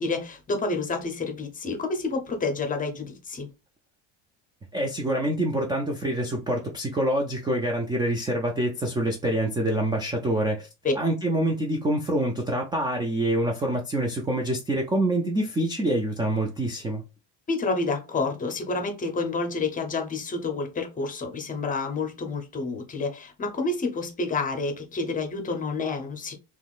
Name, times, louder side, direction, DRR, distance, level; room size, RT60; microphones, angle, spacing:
voice 1, 0.0-3.5 10.8-10.9 17.5-26.3, left 3 dB, 20° left, 0.7 m, -29 dB
voice 2, 4.7-10.7 11.0-17.0, right 1 dB, 10° right, 0.3 m, -26 dB
3.5 x 3.0 x 2.4 m
cardioid pair, 135°, 39 cm